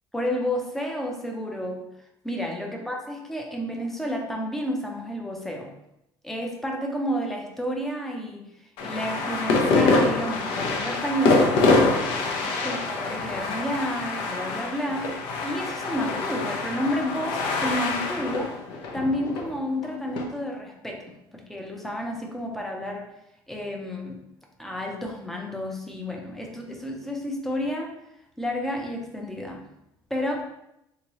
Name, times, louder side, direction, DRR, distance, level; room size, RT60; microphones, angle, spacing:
voice 1, 0.1-1.9 2.2-5.7 6.2-8.5 8.8-11.6 12.1-15.1 15.4-18.6 18.9-23.1 23.5-24.2 24.6-28.0 28.4-29.6 30.1-30.4, equal, 5° left, 1 dB, 0.5 m, -30 dB
sound 1, 8.8-20.2, left 3 dB, 75° left, 0.6 m, -25 dB
3.5 x 2.9 x 3.0 m, 0.83 s
cardioid pair, 150°, 9 cm